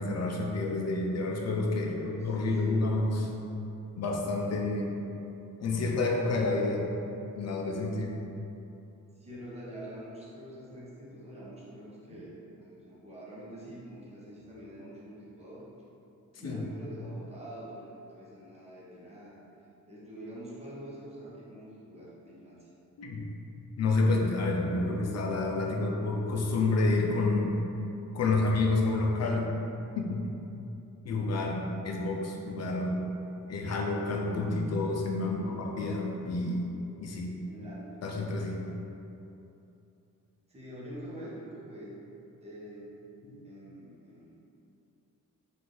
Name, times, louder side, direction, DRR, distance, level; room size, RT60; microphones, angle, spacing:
voice 1, 0.0-3.3 4.0-4.9 5.6-6.8 7.3-8.1 16.4-16.7 23.0-23.3 23.8-27.5 28.1-29.5 30.0-30.2 31.0-33.0 33.5-36.7 37.0-37.3 38.0-38.7 43.2-43.4, left 2 dB, 55° left, 0 dB, 0.6 m, -29 dB
voice 2, 1.8-3.0 9.2-15.6 16.4-19.4 19.9-22.7 35.2-35.6 37.5-38.0 40.5-42.0 42.4-43.0 43.4-44.3, right 1 dB, 20° right, -7 dB, 0.9 m, -46 dB
4.8 x 2.6 x 3.7 m, 2.8 s
wide cardioid pair, 165°, 32 cm